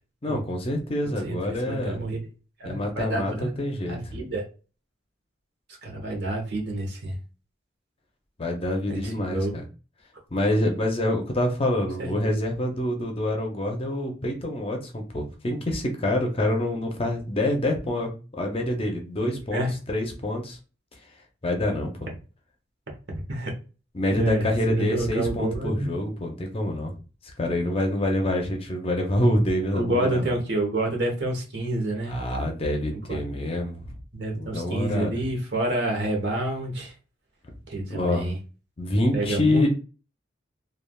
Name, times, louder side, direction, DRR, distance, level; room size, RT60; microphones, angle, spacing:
voice 1, 0.2-2.0 2.6-4.2 8.4-9.6 10.3-20.6 21.4-22.1 23.9-26.9 27.4-30.4 32.1-34.0 34.3-35.2 37.9-38.3 38.8-39.7, left 1 dB, 30° left, 3 dB, 0.5 m, -26 dB
voice 2, 1.2-2.2 2.6-3.5 3.9-4.4 5.8-7.2 8.9-9.5 12.0-12.4 19.2-19.7 23.3-23.5 24.1-25.9 29.7-32.2 32.9-33.2 34.1-36.9 37.7-38.4 39.1-39.7, right 2 dB, 60° right, 1 dB, 1.0 m, -28 dB
3.2 x 2.3 x 2.3 m, 0.34 s
head